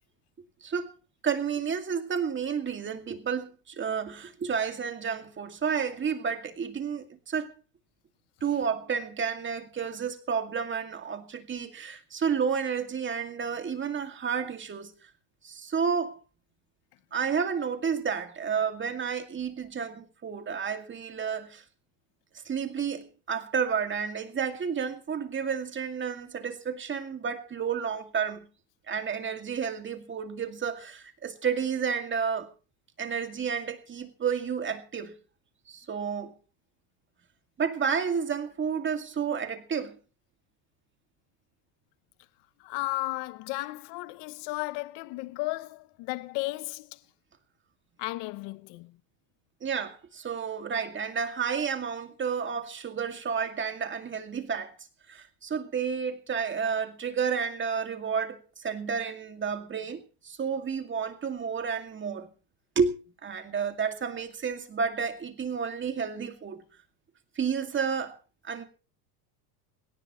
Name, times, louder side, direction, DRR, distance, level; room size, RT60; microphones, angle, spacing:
voice 1, 0.6-0.9 1.2-7.5 8.4-15.0 15.4-16.2 17.1-21.6 22.5-28.5 28.9-32.5 33.0-35.1 35.7-36.3 37.6-40.0 49.6-54.7 55.1-62.3 62.8-66.6 67.4-68.2 68.4-68.7, right 6 dB, 25° right, 2.3 m, -31 dB
voice 2, 42.6-47.0 48.0-48.9, left 20 dB, 55° left, 0.9 m, -34 dB
18.5 x 18.0 x 3.1 m
supercardioid pair, 125°, 49 cm